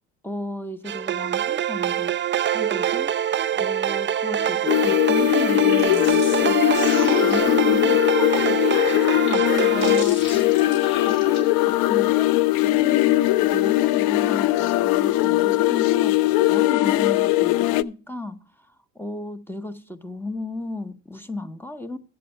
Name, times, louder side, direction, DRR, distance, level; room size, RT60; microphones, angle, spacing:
voice 1, 0.2-12.3 12.6-22.0, left 2 dB, 5° left, 0.8 m, -35 dB
sound 1, 0.9-10.0, right 9 dB, 30° right, 0.5 m, -24 dB
sound 2, 4.7-17.8, left 18 dB, 60° left, 0.5 m, -20 dB
sound 3, 5.5-7.7 8.4-11.4, left 4 dB, 85° left, 4.7 m, -37 dB
7.9 x 7.6 x 5.4 m
supercardioid pair, 80°, 42 cm